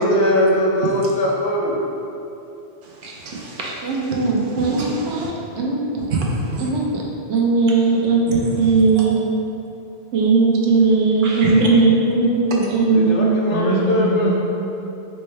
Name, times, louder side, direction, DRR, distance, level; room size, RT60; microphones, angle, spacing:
voice 1, 0.0-1.8 12.9-14.3, left 1 dB, 80° left, -2 dB, 1.0 m, -20 dB
voice 2, 2.8-4.2 4.6-5.3 6.1-6.6 8.3-8.4 9.0-9.1 11.2-11.7, right 3 dB, 60° right, -3 dB, 0.6 m, -27 dB
voice 3, 3.8-5.3 5.6-6.1 6.6-7.0 7.3-9.2 10.1-14.4, right 3 dB, 80° right, -2 dB, 0.9 m, -18 dB
4.3 x 2.1 x 3.2 m, 2.8 s
omnidirectional pair, 1.2 m